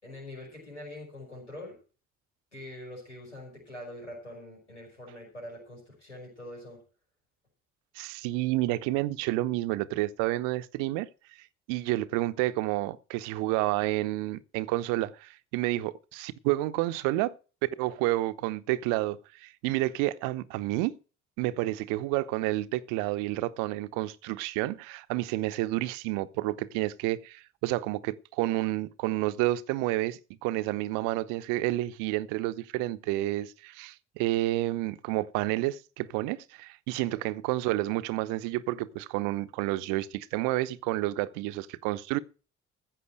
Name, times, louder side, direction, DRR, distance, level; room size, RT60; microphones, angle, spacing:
voice 1, 0.0-1.8 2.5-6.8 37.1-37.2, left 1 dB, 90° left, 5.3 m, -44 dB
voice 2, 7.9-11.1 11.7-17.3 17.6-21.0 21.4-42.2, right 17 dB, 65° right, 0.9 m, -30 dB
15.0 x 5.9 x 7.7 m
figure-of-eight pair, 45°, 34 cm